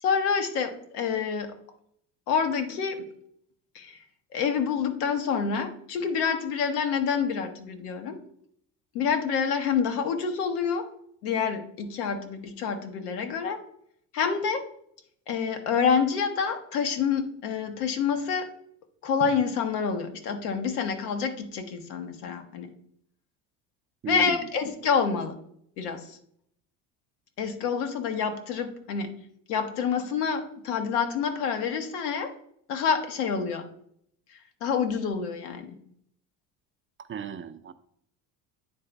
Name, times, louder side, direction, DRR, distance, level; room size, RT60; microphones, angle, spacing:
voice 1, 0.0-1.5 2.3-3.1 3.7-4.0 4.3-8.2 8.9-10.9 11.2-13.6 14.1-14.7 15.3-18.5 19.0-22.7 24.1-25.4 25.8-26.2 27.4-29.1 29.5-32.3 32.7-33.7 34.3-35.7, left 6 dB, 80° left, 6 dB, 1.2 m, -27 dB
voice 2, 24.0-24.4 37.0-37.7, right 6 dB, 30° right, 10 dB, 0.5 m, -35 dB
9.5 x 3.9 x 3.4 m, 0.68 s
hypercardioid pair, 75°, 46 cm